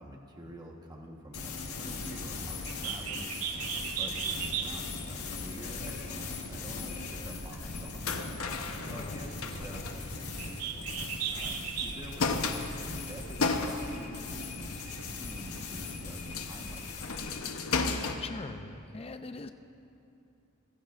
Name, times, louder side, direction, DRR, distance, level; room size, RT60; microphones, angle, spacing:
voice 1, 0.0-3.3 3.9-8.2 8.8-10.8 11.3-12.6 12.9-16.8, equal, 20° right, 0 dB, 1.2 m, -47 dB
sound 1, 1.3-17.4, left 3 dB, 90° left, 1.5 m, -40 dB
Bird, 2.6-12.2, right 7 dB, 85° right, 0.9 m, -38 dB
sound 2, 8.0-11.1 11.4-11.5 11.8-14.1 14.6-15.1 15.5-15.6 16.1-18.2, left 4 dB, 70° left, 0.9 m, -34 dB
voice 2, 8.8-9.2 18.2-19.5, left 3 dB, 25° left, 8 dB, 0.4 m, -41 dB
23.5 x 15.5 x 2.5 m, 2.8 s
head